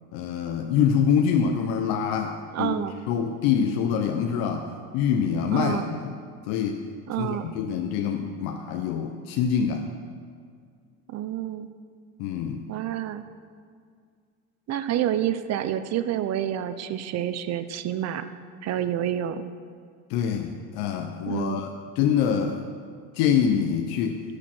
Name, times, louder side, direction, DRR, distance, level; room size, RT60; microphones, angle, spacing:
voice 1, 0.1-2.8 3.1-4.7 4.9-6.1 6.5-6.8 7.2-9.9 12.2-12.6 20.1-21.7 22.0-22.6 23.1-24.2, left 7 dB, 65° left, 4 dB, 0.9 m, -25 dB
voice 2, 2.5-2.9 5.5-5.8 7.1-7.5 11.1-11.7 12.7-13.2 14.7-18.3 18.6-19.4 21.2-21.6, right 11 dB, 40° right, 11 dB, 0.7 m, -28 dB
13.5 x 6.6 x 6.1 m, 2.1 s
supercardioid pair, 120°, 40 cm